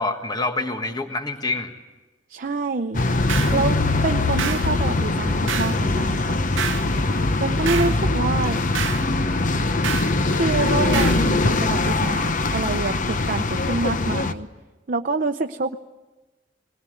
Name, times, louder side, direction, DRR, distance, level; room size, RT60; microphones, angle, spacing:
voice 1, 0.0-1.7 7.5-8.0, left 2 dB, 20° left, 6 dB, 1.4 m, -27 dB
voice 2, 2.3-3.0 3.5-3.8 4.0-6.4 7.4-8.6 10.3-14.5 14.9-15.8, right 3 dB, 50° right, 5 dB, 0.7 m, -26 dB
sound 1, 2.9-14.3, left 2 dB, 45° left, 0.9 m, -22 dB
sound 2, 3.3-3.6 4.4-4.7 5.5-5.8 6.6-6.9 7.7-8.0 8.8-9.1 9.8-10.2 10.9-11.3, right 9 dB, 85° right, 0.7 m, -28 dB
22.0 x 19.5 x 9.3 m, 1.2 s
head